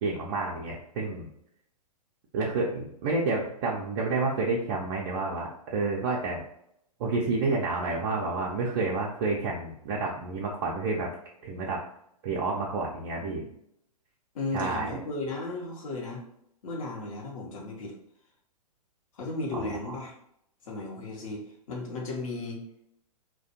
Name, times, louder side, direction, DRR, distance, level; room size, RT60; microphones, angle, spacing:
voice 1, 0.0-1.3 2.3-6.4 7.0-11.1 11.4-11.8 12.2-13.5 14.5-15.0 19.5-19.9, right 3 dB, 35° right, -3 dB, 0.4 m, -29 dB
voice 2, 14.3-16.2 16.6-18.0 19.1-20.1 20.6-22.6, left 2 dB, 55° left, -1 dB, 0.8 m, -35 dB
2.4 x 2.1 x 2.7 m, 0.74 s
figure-of-eight pair, 115°, 20 cm